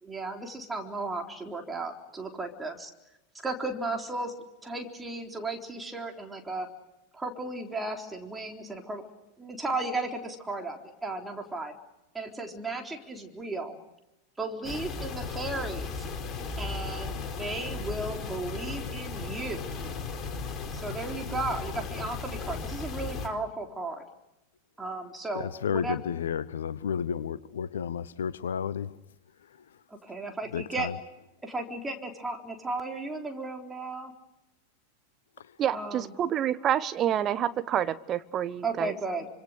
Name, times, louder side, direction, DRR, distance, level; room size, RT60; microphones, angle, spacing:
voice 1, 0.0-2.9 3.4-4.3 4.6-6.7 7.1-9.0 9.4-11.7 12.1-13.8 14.4-16.1 16.6-19.6 20.7-24.0 24.8-26.0 29.9-30.9 31.4-34.1 35.7-36.1 38.6-39.3, right 2 dB, 10° right, 3.9 m, -35 dB
sound 1, 14.6-23.3, left 4 dB, 25° left, 4.3 m, -36 dB
voice 2, 25.3-28.9 30.5-30.9, left 7 dB, 65° left, 0.9 m, -32 dB
voice 3, 35.6-38.9, right 10 dB, 30° right, 1.2 m, -28 dB
27.5 x 26.0 x 6.6 m
figure-of-eight pair, 90°, 0 cm